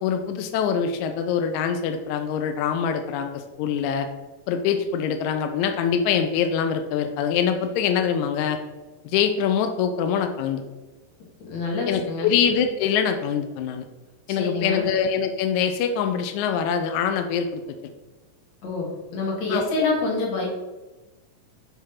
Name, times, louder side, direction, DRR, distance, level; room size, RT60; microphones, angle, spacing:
voice 1, 0.0-4.1 4.5-8.6 9.0-10.6 11.9-13.9 14.3-17.6 19.5-19.6, left 7 dB, 80° left, 6 dB, 1.7 m, -24 dB
voice 2, 11.4-12.3 14.3-14.8 18.6-20.5, left 3 dB, 55° left, -2 dB, 2.8 m, -26 dB
8.1 x 3.5 x 5.7 m, 1.2 s
omnidirectional pair, 3.9 m